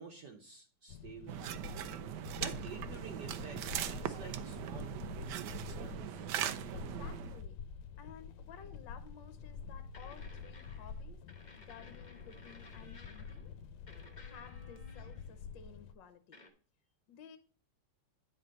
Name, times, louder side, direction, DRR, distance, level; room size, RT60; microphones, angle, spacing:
voice 1, 0.0-1.7 2.4-6.3, right 5 dB, 60° right, 2 dB, 1.3 m, -50 dB
sound 1, 0.9-15.9, left 6 dB, 85° left, 1.6 m, -47 dB
sound 2, 1.3-7.4, right 11 dB, 80° right, 0.9 m, -40 dB
voice 2, 6.7-7.6 8.0-11.2 11.6-13.5 14.1-16.4 17.1-17.4, left 7 dB, 65° left, 9 dB, 1.4 m, -55 dB
sound 3, 9.1-9.2 9.9-11.0 11.3-13.5 13.9-15.4 16.3-16.5, left 2 dB, 35° left, 0.7 m, -57 dB
9.2 x 4.3 x 5.3 m, 0.40 s
omnidirectional pair, 2.4 m